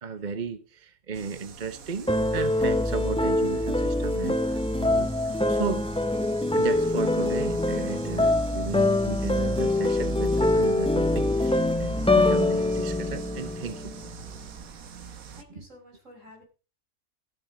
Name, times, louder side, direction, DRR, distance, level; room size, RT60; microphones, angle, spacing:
voice 1, 0.0-5.9 6.5-14.1, right 5 dB, 35° right, 1.0 m, -35 dB
sound 1, 1.1-15.4, right 6 dB, 80° right, 1.6 m, -45 dB
sound 2, 2.1-14.2, left 1 dB, 5° left, 0.5 m, -24 dB
voice 2, 8.4-8.7 15.0-16.4, left 1 dB, 60° right, 5.8 m, -52 dB
13.5 x 10.5 x 5.0 m
omnidirectional pair, 1.5 m